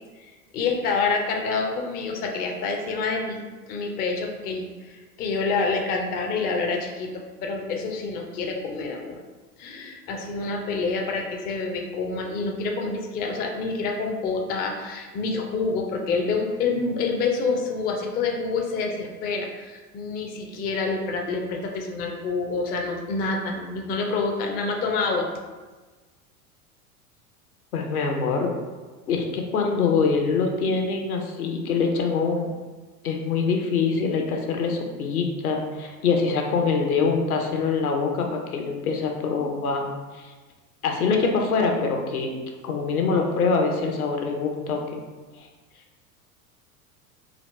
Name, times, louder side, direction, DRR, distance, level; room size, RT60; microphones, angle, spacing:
voice 1, 0.2-3.4 3.7-9.2 9.6-25.3, left 4 dB, 20° left, 2 dB, 0.4 m, -27 dB
voice 2, 27.7-28.6 29.1-32.5 33.0-39.8 40.1-40.3 40.8-42.3 42.6-44.8 45.4-45.5, left 4 dB, 75° left, 2 dB, 0.7 m, -24 dB
3.9 x 2.8 x 3.2 m, 1.3 s
figure-of-eight pair, 80°, 45 cm